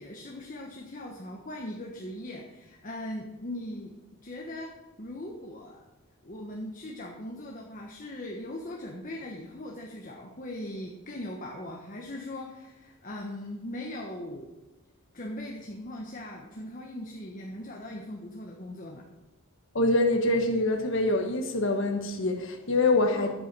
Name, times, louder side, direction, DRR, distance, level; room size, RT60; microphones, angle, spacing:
voice 1, 0.0-3.9 4.2-5.8 6.2-14.5 15.1-19.1 23.1-23.3, left 1 dB, 35° left, 0 dB, 1.2 m, -39 dB
voice 2, 19.7-23.3, left 2 dB, 60° left, 3 dB, 1.3 m, -25 dB
10.0 x 8.2 x 6.1 m, 1.0 s
head